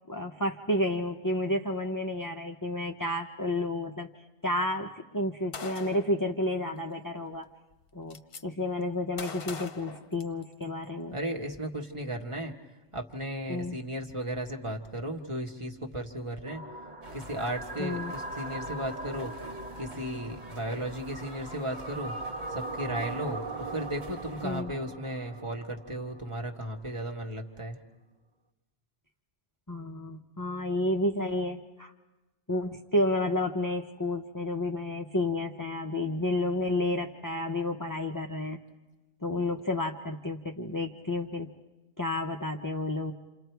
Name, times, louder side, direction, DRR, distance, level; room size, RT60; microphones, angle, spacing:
voice 1, 0.1-4.1 4.4-7.5 7.9-11.2 13.5-13.8 17.8-18.1 24.4-24.7 29.7-31.9 32.5-38.6 39.2-41.5 42.0-43.1, left 1 dB, 20° left, 2 dB, 0.7 m, -31 dB
Gunshot gunfire, 5.5-6.2 7.3-7.4 7.7-8.4 9.2-10.7, left 6 dB, 55° left, 1.0 m, -41 dB
voice 2, 11.1-12.5 12.9-16.6 17.1-19.3 19.8-22.1 22.5-27.8, right 1 dB, 25° right, 1 dB, 1.6 m, -35 dB
sound 1, 16.5-26.6, right 2 dB, 40° right, 1.5 m, -40 dB
sound 2, 17.0-24.6, equal, 60° right, 2.3 m, -49 dB
28.5 x 28.0 x 4.6 m, 1.1 s
omnidirectional pair, 1.2 m